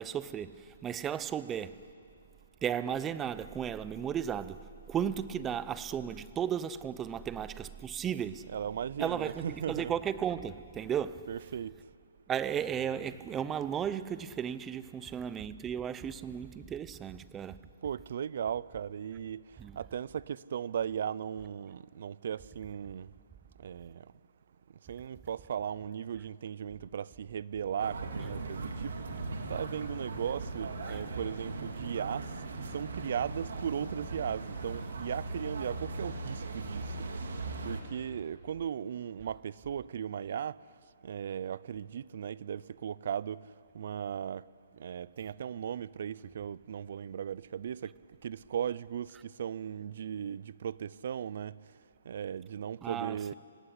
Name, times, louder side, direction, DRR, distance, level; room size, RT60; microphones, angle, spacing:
voice 1, 0.0-1.8 2.6-8.5 9.0-11.3 12.3-17.6 19.6-19.8 30.9-31.0 52.8-53.3, right 8 dB, 15° right, 0.6 m, -35 dB
voice 2, 8.4-9.9 11.3-11.8 17.8-19.5 19.8-23.1 23.6-24.1 24.9-29.2 29.5-32.3 32.7-37.1 37.6-40.6 41.0-43.5 43.7-44.5 44.8-47.9 48.2-51.5 52.1-53.3, right 8 dB, 55° right, 0.5 m, -37 dB
sound 1, 27.8-37.8, right 3 dB, 75° right, 3.3 m, -39 dB
25.5 x 18.0 x 9.9 m
hypercardioid pair, 160°, 0 cm